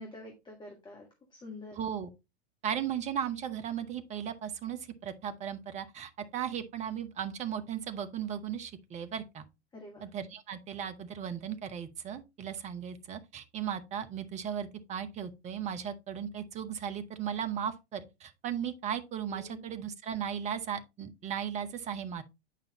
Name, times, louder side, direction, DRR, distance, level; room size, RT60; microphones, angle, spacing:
voice 1, 0.0-1.8 9.7-10.1 19.3-19.6, left 2 dB, 15° left, 1.7 m, -47 dB
voice 2, 1.8-2.1 2.6-9.4 10.0-22.2, right 8 dB, 20° right, 0.9 m, -36 dB
9.2 x 5.3 x 3.0 m
figure-of-eight pair, 95°, 33 cm